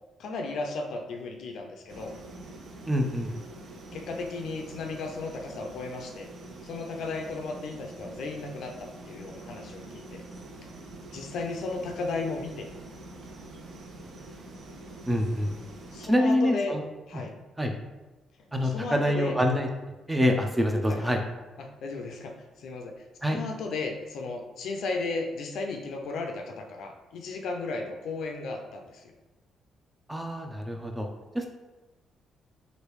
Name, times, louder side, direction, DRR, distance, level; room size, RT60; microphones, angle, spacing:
voice 1, 0.2-2.1 3.9-6.3 6.6-10.2 11.1-12.7 15.9-16.8 17.1-17.3 18.6-19.4 20.9-21.2 21.6-22.9 23.3-29.1, left 3 dB, 75° left, 3 dB, 0.5 m, -35 dB
sound 1, 1.9-16.1, right 2 dB, 65° right, 0.5 m, -45 dB
voice 2, 2.9-3.3 15.1-15.5 16.0-16.8 17.6-17.7 18.5-19.7 20.1-21.2 23.2-23.4 30.1-31.1 31.3-31.5, equal, 10° right, 3 dB, 0.5 m, -25 dB
3.2 x 2.6 x 3.1 m, 1.1 s
cardioid pair, 90°, 0 cm